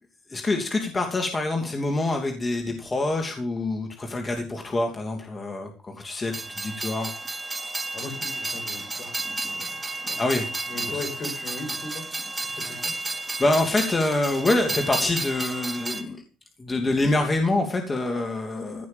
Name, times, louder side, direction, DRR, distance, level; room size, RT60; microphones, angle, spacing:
voice 1, 0.3-6.3 6.6-7.1 10.2-10.5 10.9-11.0 13.4-16.2 16.6-18.9, left 2 dB, 25° left, 3 dB, 2.7 m, -25 dB
Train, 6.3-16.0, right 2 dB, 15° right, 2.6 m, -32 dB
voice 2, 7.9-9.1 9.4-9.7 10.0-10.2 10.7-12.1 12.6-12.9, left 3 dB, 55° left, 6 dB, 5.1 m, -37 dB
16.0 x 6.4 x 7.1 m, 0.37 s
supercardioid pair, 80°, 0 cm